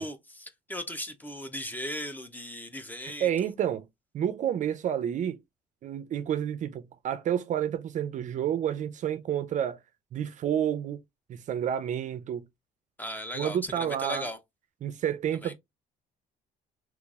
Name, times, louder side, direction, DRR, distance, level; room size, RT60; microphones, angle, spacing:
voice 1, 0.0-3.3 13.0-14.4 15.4-15.5, left 1 dB, 10° left, 0.6 m, -37 dB
voice 2, 3.2-3.9 4.1-5.4 5.8-9.8 10.1-11.0 11.3-12.5 13.3-14.3 14.8-15.5, right 10 dB, 50° right, 0.4 m, -29 dB
3.8 x 3.0 x 2.3 m
cardioid pair, 110°, 17 cm